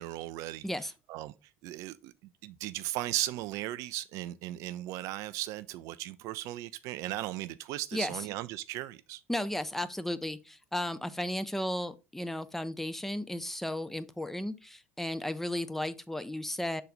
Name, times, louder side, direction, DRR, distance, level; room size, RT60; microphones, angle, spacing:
voice 1, 0.0-0.7 1.1-1.3 1.6-2.1 2.4-9.2, right 15 dB, 50° right, 0.3 m, -36 dB
voice 2, 7.9-8.2 9.3-16.8, left 1 dB, 5° left, 0.5 m, -34 dB
6.3 x 4.0 x 4.0 m
figure-of-eight pair, 65°, 7 cm